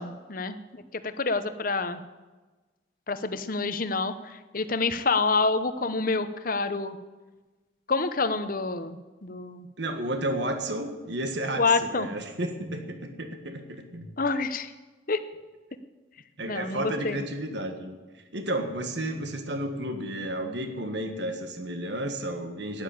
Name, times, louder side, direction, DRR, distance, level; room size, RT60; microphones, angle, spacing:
voice 1, 0.0-2.0 3.1-7.0 7.9-9.7 11.6-12.1 14.2-14.7 15.1-15.2 16.5-17.2, left 3 dB, 45° left, 10 dB, 0.9 m, -28 dB
voice 2, 9.8-14.1 16.4-18.0 18.3-22.8, right 1 dB, 60° right, 6 dB, 1.7 m, -32 dB
12.5 x 10.5 x 8.7 m, 1.2 s
head